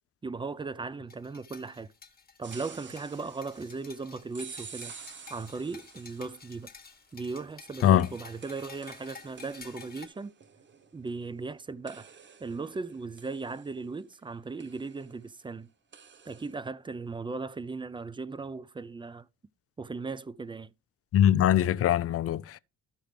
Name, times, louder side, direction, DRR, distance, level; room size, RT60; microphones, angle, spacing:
voice 1, 0.2-1.9 2.4-4.9 5.3-6.7 7.1-10.3 10.9-12.1 12.4-15.7 16.3-19.3 19.8-20.7, right 4 dB, 15° right, 0.4 m, -37 dB
sound 1, 1.1-10.1, left 5 dB, 30° left, 1.3 m, -51 dB
sound 2, 2.4-6.7 8.0-11.5 11.9-14.2 14.6-15.1 15.9-16.5, right 6 dB, 40° right, 0.9 m, -50 dB
voice 2, 21.1-22.6, left 11 dB, 50° left, 0.5 m, -22 dB
13.5 x 5.0 x 3.3 m
cardioid pair, 90°, 30 cm